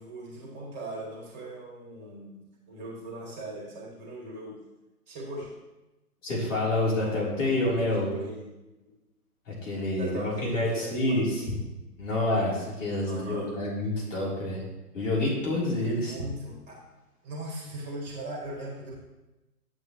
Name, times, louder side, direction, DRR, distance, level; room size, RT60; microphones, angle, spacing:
voice 1, 0.0-4.6 5.1-5.5 7.0-8.5 10.0-11.6 13.0-13.5 16.0-16.8 17.2-18.9, right 1 dB, 25° right, -2 dB, 1.7 m, -40 dB
voice 2, 6.2-8.2 9.5-11.4 12.0-14.6 14.9-16.1, left 1 dB, 50° left, -5 dB, 3.3 m, -28 dB
10.0 x 7.4 x 3.0 m, 1.0 s
figure-of-eight pair, 130°, 47 cm